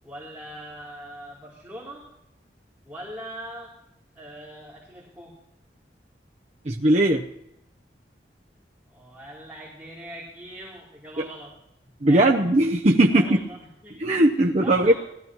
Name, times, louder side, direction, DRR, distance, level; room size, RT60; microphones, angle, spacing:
voice 1, 0.0-2.0 2.8-3.7 4.1-5.3 8.9-11.5 12.1-12.4 13.1-14.0 14.3-14.9, right 1 dB, 10° right, -6 dB, 3.2 m, -41 dB
voice 2, 6.7-7.2 11.2-11.3 12.0-13.4 14.0-14.9, right 1 dB, 40° right, 1 dB, 0.7 m, -19 dB
19.0 x 14.0 x 3.0 m, 0.82 s
head